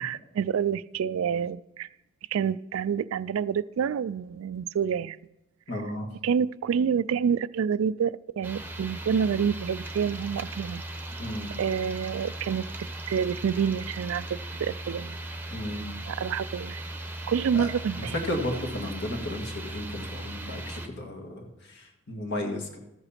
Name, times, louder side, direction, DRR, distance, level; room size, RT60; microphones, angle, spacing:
voice 1, 0.0-1.9 2.3-5.2 5.7-5.8 6.2-10.8 11.6-15.2 16.1-16.8 17.3-18.2, right 7 dB, 75° right, 18 dB, 0.3 m, -28 dB
voice 2, 5.7-6.1 11.2-11.5 15.5-15.9 17.5-17.7 18.0-22.8, left 1 dB, 55° left, 2 dB, 1.8 m, -34 dB
sound 1, 8.4-20.9, right 1 dB, 10° right, 0.9 m, -38 dB
14.0 x 7.9 x 4.3 m, 0.92 s
head